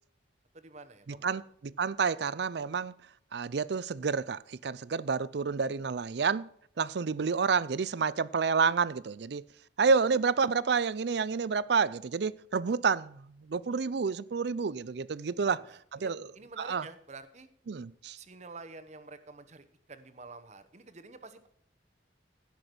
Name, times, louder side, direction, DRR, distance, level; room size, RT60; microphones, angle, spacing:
voice 1, 0.5-1.4 15.3-17.5 18.1-21.5, right 3 dB, 35° right, 0.9 m, -49 dB
voice 2, 1.2-2.9 3.3-6.4 6.8-9.4 9.8-15.6 15.9-16.3 16.6-16.8 17.7-18.2, right 5 dB, 60° right, 0.4 m, -29 dB
16.0 x 6.0 x 6.1 m
head